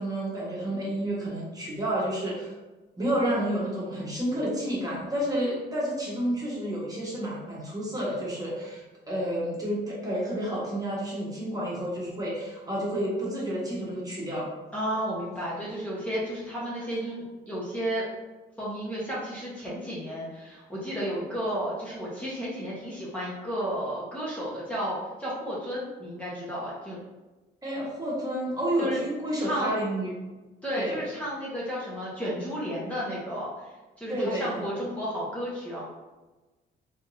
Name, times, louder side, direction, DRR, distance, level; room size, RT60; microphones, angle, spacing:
voice 1, 0.0-2.5 3.0-14.5 27.6-30.1 30.7-31.0 34.1-34.7, right 1 dB, 20° right, -6 dB, 1.4 m, -30 dB
voice 2, 14.7-18.0 18.6-27.0 28.8-29.0 29.3-29.8 30.6-35.8, equal, 5° left, -8 dB, 1.1 m, -33 dB
3.6 x 3.6 x 2.7 m, 1.1 s
cardioid pair, 90°, 20 cm